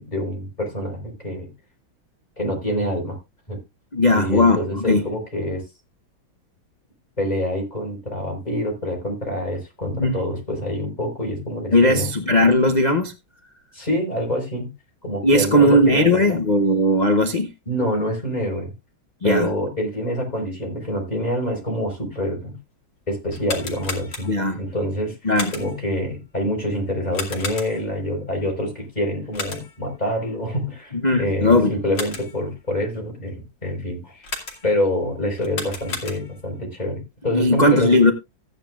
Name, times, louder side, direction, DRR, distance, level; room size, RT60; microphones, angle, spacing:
voice 1, 0.0-1.5 2.4-3.2 3.5-3.6 4.1-5.6 7.2-12.1 13.7-14.7 15.0-16.4 17.7-18.7 19.2-22.6 23.1-34.3 34.6-37.9, equal, 20° left, 4.6 m, -26 dB
voice 2, 3.9-5.0 9.9-10.2 11.7-13.1 15.2-17.5 19.2-19.5 24.2-24.6 25.2-25.5 30.9-31.7 37.3-38.1, left 1 dB, 85° left, 0.3 m, -17 dB
sound 1, 23.3-24.6 25.3-25.9 27.1-28.0 29.3-29.9 31.7-32.5 34.2-34.9 35.4-36.5, left 4 dB, 60° left, 3.0 m, -33 dB
15.0 x 9.6 x 2.4 m
omnidirectional pair, 2.2 m